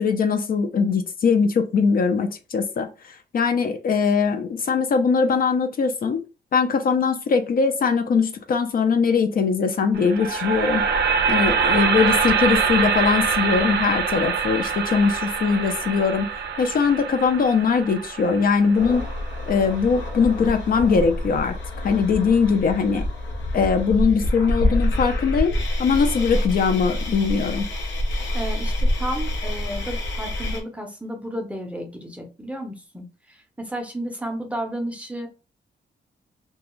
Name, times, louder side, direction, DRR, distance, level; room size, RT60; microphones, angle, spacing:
voice 1, 0.0-6.2 6.5-10.8 11.3-16.3 16.6-19.1 19.5-21.6 21.8-23.1 23.5-25.5 25.8-27.7, left 5 dB, 50° left, 6 dB, 0.4 m, -21 dB
sound 1, 9.9-20.1, right 6 dB, 65° right, 0.4 m, -24 dB
sound 2, 18.7-30.6, left 1 dB, 85° left, 0.7 m, -27 dB
voice 2, 28.3-35.3, right 1 dB, 5° right, 3 dB, 0.5 m, -32 dB
2.4 x 2.2 x 3.0 m, 0.32 s
wide cardioid pair, 135°, 19 cm